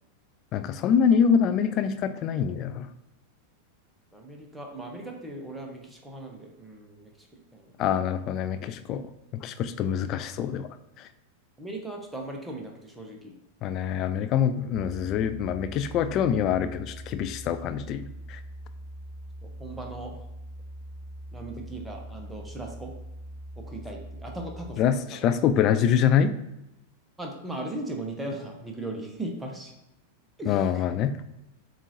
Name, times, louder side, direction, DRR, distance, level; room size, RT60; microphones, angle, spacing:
voice 1, 0.5-2.9 7.8-9.0 9.4-10.7 13.6-18.4 24.8-26.3 30.5-31.2, left 8 dB, 35° left, 10 dB, 0.3 m, -25 dB
voice 2, 4.1-7.7 11.6-13.3 19.4-20.2 21.3-22.9 23.6-24.8 25.1-25.2 27.2-29.7 30.4-30.9, right 2 dB, 5° right, 1 dB, 0.8 m, -38 dB
sound 1, 14.7-24.7, right 1 dB, 30° right, 1.1 m, -42 dB
7.1 x 2.5 x 2.7 m, 0.89 s
figure-of-eight pair, 90°, 0 cm